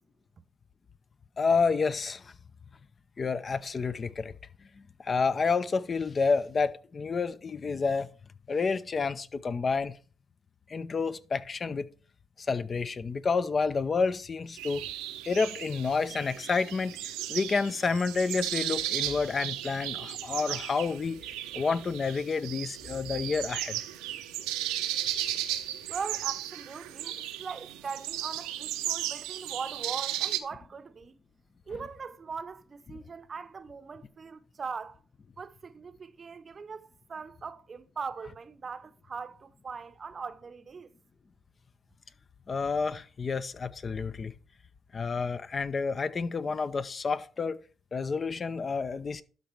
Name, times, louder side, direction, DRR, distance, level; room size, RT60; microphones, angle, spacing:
voice 1, 1.4-2.3 3.2-4.3 5.0-8.1 8.5-9.9 10.7-11.9 12.4-14.8 15.2-23.8 42.5-44.3 44.9-47.6 47.9-49.2, left 4 dB, 45° left, 0.7 m, -29 dB
sound 1, 14.6-30.4, right 13 dB, 85° right, 0.6 m, -35 dB
voice 2, 25.9-31.2 31.7-35.0 35.4-40.9, right 5 dB, 45° right, 0.7 m, -40 dB
12.0 x 4.0 x 4.5 m
hypercardioid pair, 50°, 0 cm